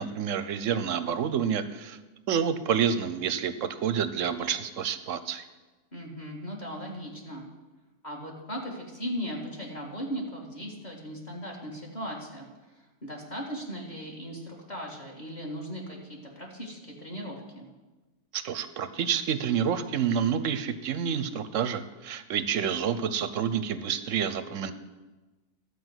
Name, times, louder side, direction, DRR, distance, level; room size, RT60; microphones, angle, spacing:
voice 1, 0.0-2.0 2.3-5.4 18.3-24.7, right 7 dB, 65° right, 12 dB, 0.9 m, -28 dB
voice 2, 5.9-7.5 8.0-17.7, equal, 30° left, -2 dB, 1.9 m, -38 dB
12.5 x 5.0 x 8.0 m, 1.2 s
omnidirectional pair, 1.6 m